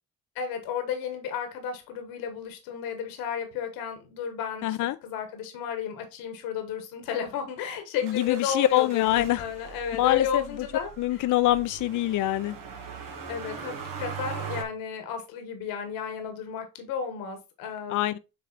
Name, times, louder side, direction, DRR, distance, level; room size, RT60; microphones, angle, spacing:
voice 1, 0.3-4.8 5.0-10.9 13.3-18.1, left 8 dB, 90° left, 1.5 m, -33 dB
voice 2, 4.6-5.0 8.0-9.5 10.0-10.7 11.0-12.6 17.9-18.2, left 14 dB, 60° left, 0.5 m, -24 dB
Motor vehicle (road), 8.0-14.6, right 6 dB, 70° right, 1.5 m, -40 dB
7.6 x 3.2 x 4.1 m
supercardioid pair, 65°, 34 cm